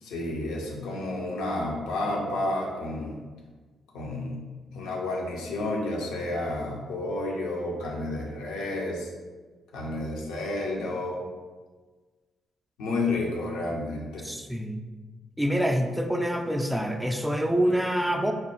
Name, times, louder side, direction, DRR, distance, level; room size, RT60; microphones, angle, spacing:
voice 1, 0.0-3.2 3.9-4.4 4.7-9.1 9.7-11.2 12.8-14.3, left 2 dB, 70° left, -1 dB, 0.6 m, -31 dB
voice 2, 14.2-14.8 15.4-18.3, equal, 5° right, 4 dB, 0.4 m, -26 dB
3.2 x 2.2 x 4.3 m, 1.4 s
figure-of-eight pair, 40°, 0 cm